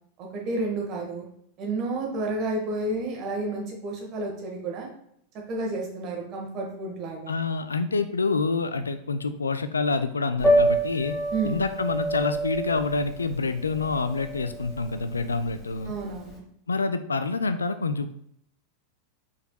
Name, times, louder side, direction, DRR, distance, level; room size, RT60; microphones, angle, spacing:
voice 1, 0.2-1.2 1.6-4.9 5.5-7.3 11.3-11.6 15.8-16.4, right 2 dB, 35° right, 0 dB, 1.3 m, -31 dB
voice 2, 7.3-11.2 11.4-15.9 16.7-18.1, left 4 dB, 75° left, 11 dB, 0.3 m, -27 dB
Piano, 10.4-16.3, right 1 dB, 10° left, 1.7 m, -27 dB
5.2 x 4.1 x 2.2 m, 0.68 s
figure-of-eight pair, 90°, 0 cm